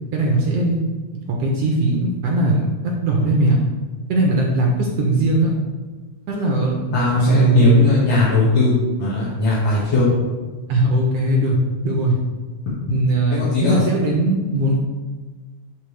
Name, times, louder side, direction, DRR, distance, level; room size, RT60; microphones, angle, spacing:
voice 1, 0.1-0.8 1.1-2.7 3.0-3.6 4.1-5.5 6.3-7.9 10.7-11.6 11.8-12.2 12.9-14.8, right 2 dB, 65° right, -1 dB, 1.7 m, -19 dB
voice 2, 6.9-10.1 13.3-13.8, left 3 dB, 45° left, -9 dB, 2.2 m, -18 dB
11.5 x 3.9 x 3.3 m, 1.3 s
omnidirectional pair, 3.3 m